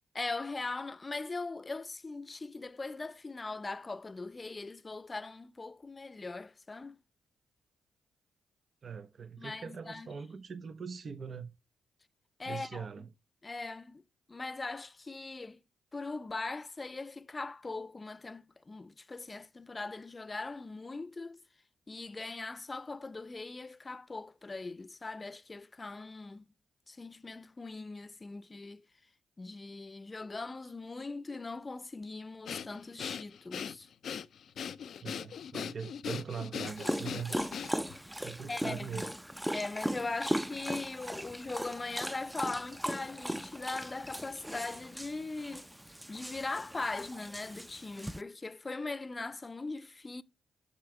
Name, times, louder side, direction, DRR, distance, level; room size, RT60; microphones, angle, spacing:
voice 1, 0.1-7.0 9.4-10.1 12.4-13.1 13.4-14.0 14.3-15.6 15.9-21.4 21.9-26.5 26.9-28.8 29.4-33.9 38.5-39.1 39.5-45.7 46.1-50.2, left 3 dB, 30° left, 0.7 m, -40 dB
voice 2, 8.8-11.5 12.5-13.1 35.0-37.4 38.2-39.1, right 6 dB, 55° right, 0.9 m, -41 dB
Breathing, 32.5-38.0, left 8 dB, 65° left, 0.5 m, -40 dB
Dog, 36.7-48.2, equal, 5° right, 0.6 m, -38 dB
11.5 x 6.7 x 3.3 m
hypercardioid pair, 40°, 0 cm